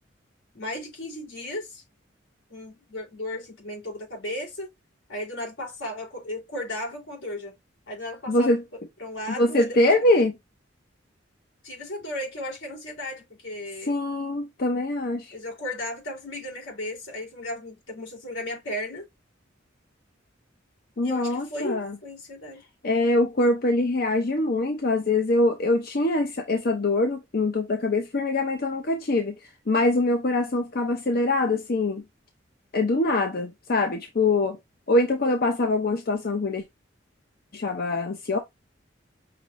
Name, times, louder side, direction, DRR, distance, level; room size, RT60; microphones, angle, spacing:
voice 1, 0.5-1.8 2.5-4.7 5.1-7.5 7.9-8.5 9.0-10.2 11.6-14.0 15.3-19.1 21.0-22.6, left 1 dB, 90° left, 3.5 m, -35 dB
voice 2, 8.3-8.6 9.4-10.3 13.9-15.3 21.0-22.0 22.8-32.0 32.7-34.6 34.9-36.6 37.5-38.4, left 2 dB, 50° left, 0.6 m, -23 dB
6.0 x 3.0 x 2.5 m
head